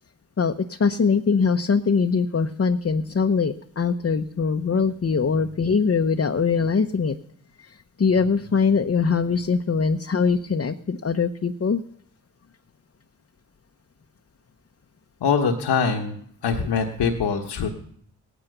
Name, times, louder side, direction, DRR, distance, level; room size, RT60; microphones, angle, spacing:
voice 1, 0.4-7.1 7.6-11.8, left 5 dB, 35° left, 6 dB, 0.9 m, -22 dB
voice 2, 15.2-16.1 16.4-17.7, left 5 dB, 75° left, 3 dB, 1.4 m, -23 dB
17.5 x 9.9 x 6.7 m, 0.67 s
supercardioid pair, 45°, 40 cm